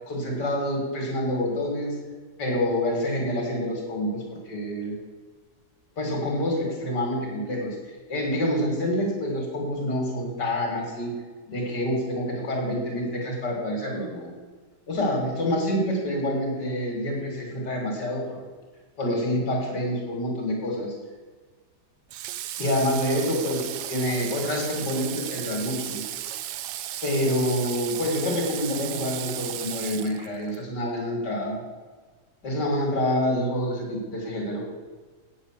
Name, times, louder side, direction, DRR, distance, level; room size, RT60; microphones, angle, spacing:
voice 1, 0.1-1.9 2.4-5.0 6.0-7.8 8.1-11.1 11.5-14.3 14.9-18.2 19.0-20.9 22.6-26.0 27.0-31.6 32.4-34.6, left 1 dB, 70° left, 0 dB, 2.9 m, -27 dB
Water / Water tap faucet, 22.1-30.6, right 12 dB, 75° right, 1.2 m, -35 dB
8.8 x 7.2 x 7.4 m, 1.4 s
omnidirectional pair, 1.9 m